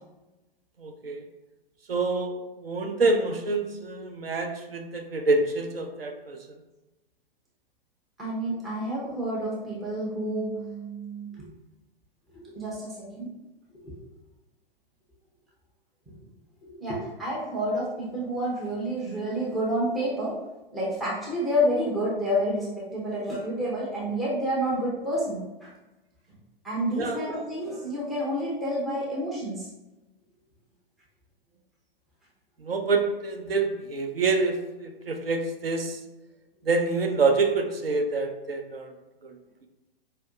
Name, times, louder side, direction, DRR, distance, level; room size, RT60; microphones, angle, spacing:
voice 1, 0.8-1.3 1.9-6.5 27.0-27.2 32.6-36.0 36.6-38.9 39.2-39.4, right 3 dB, 75° right, 4 dB, 0.6 m, -27 dB
voice 2, 8.2-11.5 12.3-13.3 13.8-13.9 16.6-20.4 20.7-25.7 26.6-29.7, equal, ahead, -7 dB, 0.3 m, -29 dB
4.3 x 2.5 x 2.4 m, 1.0 s
figure-of-eight pair, 110°, 29 cm